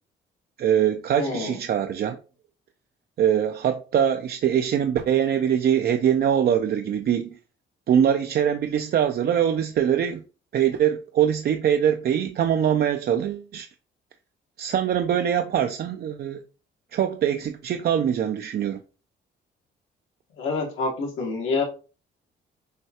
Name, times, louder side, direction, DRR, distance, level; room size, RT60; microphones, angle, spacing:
voice 1, 0.6-2.2 3.2-7.4 7.9-10.2 10.5-13.7 14.6-16.4 16.9-18.8, right 9 dB, 50° right, 0.4 m, -23 dB
voice 2, 1.2-1.6 20.4-21.6, left 3 dB, 80° left, 1.3 m, -27 dB
6.4 x 2.3 x 2.8 m
cardioid pair, 90°, 20 cm